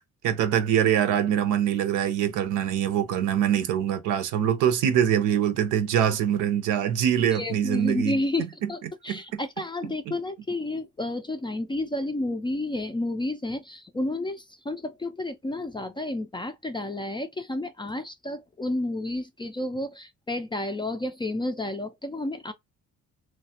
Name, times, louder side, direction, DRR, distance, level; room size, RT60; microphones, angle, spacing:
voice 1, 0.2-8.2 8.6-8.7 9.1-9.4, right 9 dB, 85° right, 0.6 m, -24 dB
voice 2, 7.3-22.5, left 1 dB, 15° left, 0.3 m, -31 dB
3.1 x 2.2 x 2.8 m
cardioid pair, 90°, 30 cm